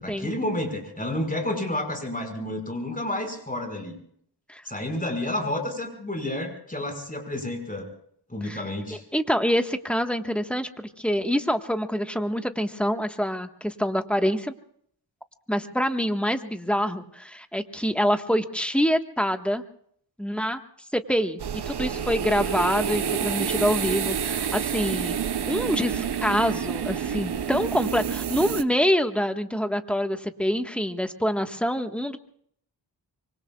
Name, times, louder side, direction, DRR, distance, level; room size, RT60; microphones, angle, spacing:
voice 1, 0.0-4.0 4.7-7.9 8.3-9.0, left 1 dB, 20° left, 4 dB, 5.3 m, -30 dB
voice 2, 9.1-14.5 15.5-19.6 20.2-20.6 20.9-21.4 21.7-25.2 25.5-32.2, equal, 5° left, 7 dB, 1.4 m, -26 dB
sound 1, 21.4-28.6, right 8 dB, 65° right, 0.9 m, -28 dB
25.0 x 24.5 x 2.4 m, 0.64 s
wide cardioid pair, 65°, 43 cm